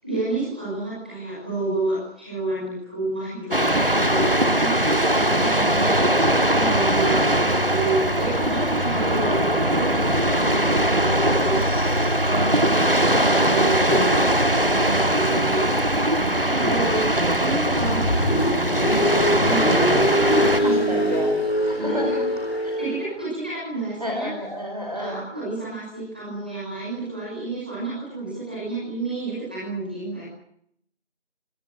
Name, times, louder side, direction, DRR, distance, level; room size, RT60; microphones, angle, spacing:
voice 1, 0.0-5.9 6.3-11.6 12.2-17.0 17.4-18.0 18.4-19.0 19.4-21.3 21.8-22.2 22.7-24.3 24.9-30.2, right 2 dB, 10° right, -8 dB, 5.8 m, -30 dB
sound 1, 3.5-20.6, right 1 dB, 50° right, 2.2 m, -21 dB
voice 2, 11.6-12.1 20.6-21.3 21.7-22.2 22.6-22.7 24.0-25.2, equal, 30° right, 2 dB, 4.8 m, -31 dB
Car, 17.7-23.1, equal, 60° left, 5.5 m, -23 dB
25.0 x 17.0 x 9.3 m, 0.70 s
figure-of-eight pair, 175°, 35 cm